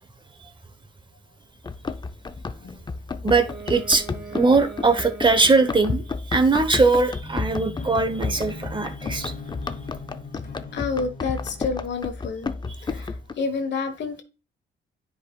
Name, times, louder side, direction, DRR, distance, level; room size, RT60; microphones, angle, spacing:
Run, 1.6-13.3, left 4 dB, 20° left, 0.5 m, -32 dB
voice 1, 3.2-9.3, right 3 dB, 25° right, 1.0 m, -21 dB
Wind instrument woodwind instrument, 3.4-6.3, right 4 dB, 60° right, 2.3 m, -41 dB
sound 1, 7.2-11.8, left 2 dB, 45° left, 1.9 m, -39 dB
voice 2, 10.7-12.5 12.8-14.2, left 4 dB, 60° left, 1.3 m, -29 dB
9.8 x 5.1 x 2.3 m
cardioid pair, 90°, 20 cm